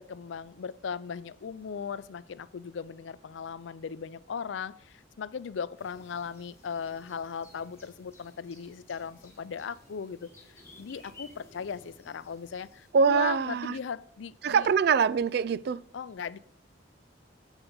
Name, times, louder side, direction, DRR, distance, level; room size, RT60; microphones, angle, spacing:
voice 1, 0.0-14.7 15.9-16.4, left 6 dB, 85° left, 0.4 m, -38 dB
sound 1, 5.8-12.9, left 2 dB, 15° left, 1.8 m, -56 dB
voice 2, 12.9-13.7 14.4-15.8, right 6 dB, 60° right, 0.3 m, -24 dB
8.1 x 7.9 x 3.9 m
head